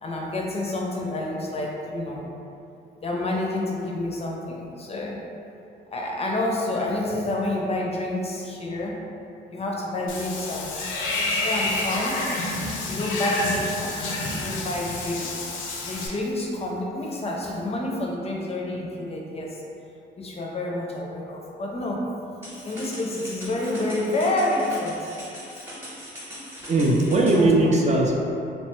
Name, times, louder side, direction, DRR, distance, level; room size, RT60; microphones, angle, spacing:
voice 1, 0.0-2.3 3.0-5.2 5.9-9.0 9.5-10.8 11.4-12.2 12.9-19.6 20.2-22.0 22.6-25.0 27.1-27.8, left 1 dB, 30° left, -2 dB, 0.5 m, -29 dB
Water / Bathtub (filling or washing), 10.1-16.1, left 2 dB, 90° left, 0.5 m, -29 dB
sound 1, 22.4-27.4, equal, 10° right, 0.9 m, -40 dB
voice 2, 26.6-28.1, right 2 dB, 35° right, -1 dB, 0.4 m, -19 dB
3.0 x 2.1 x 3.0 m, 2.7 s
cardioid pair, 90°, 20 cm